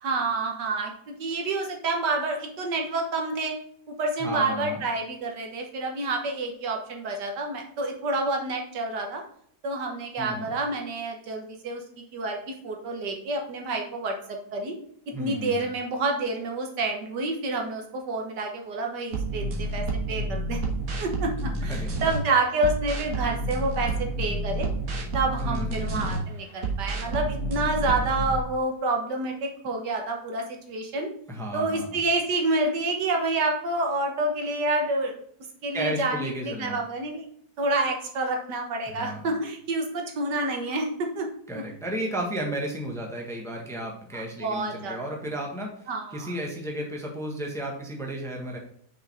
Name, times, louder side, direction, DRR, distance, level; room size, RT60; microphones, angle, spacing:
voice 1, 0.0-3.5 3.9-9.2 9.6-11.8 12.1-14.8 15.2-20.6 21.0-24.7 25.1-31.1 31.5-35.2 35.6-37.3 37.6-41.3 41.5-41.6 44.1-45.0 45.9-46.3, right 2 dB, 80° right, 2 dB, 1.8 m, -28 dB
voice 2, 4.2-4.8 10.2-10.5 15.1-15.7 21.6-21.9 25.4-26.1 31.3-32.0 35.7-36.8 38.9-39.3 41.5-45.7 46.1-48.6, right 1 dB, ahead, 0 dB, 1.0 m, -33 dB
sound 1, 19.1-22.2 22.6-26.2 26.6-28.4, right 2 dB, 60° right, 1.6 m, -29 dB
6.1 x 5.4 x 3.5 m, 0.67 s
omnidirectional pair, 1.8 m